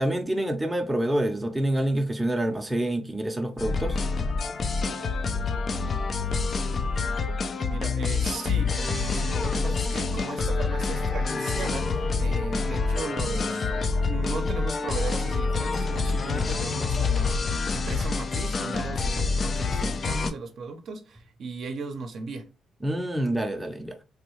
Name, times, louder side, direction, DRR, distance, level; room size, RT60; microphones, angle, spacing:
voice 1, 0.0-4.0 22.8-24.0, right 1 dB, 10° right, 0.6 m, -27 dB
sound 1, 3.6-20.3, left 4 dB, 45° left, 0.4 m, -27 dB
voice 2, 7.7-22.5, right 4 dB, 65° right, 0.6 m, -37 dB
sound 2, 9.2-17.3, left 2 dB, 85° left, 1.1 m, -38 dB
3.4 x 2.3 x 3.1 m
cardioid pair, 90°, 0 cm